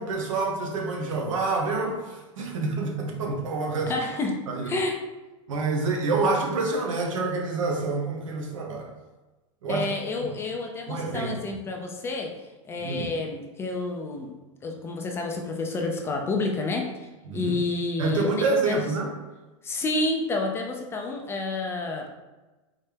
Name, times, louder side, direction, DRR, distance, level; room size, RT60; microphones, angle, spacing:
voice 1, 0.0-3.9 4.5-4.7 5.5-8.9 9.6-9.8 10.9-11.3 12.8-13.1 17.3-17.6 18.0-19.1, right 3 dB, 80° right, 1 dB, 1.2 m, -27 dB
voice 2, 3.9-5.0 9.7-12.3 12.7-14.3 14.6-17.1 17.3-18.9 19.6-22.1, left 2 dB, 15° left, 2 dB, 0.4 m, -29 dB
4.3 x 3.2 x 3.3 m, 1.1 s
supercardioid pair, 145°, 17 cm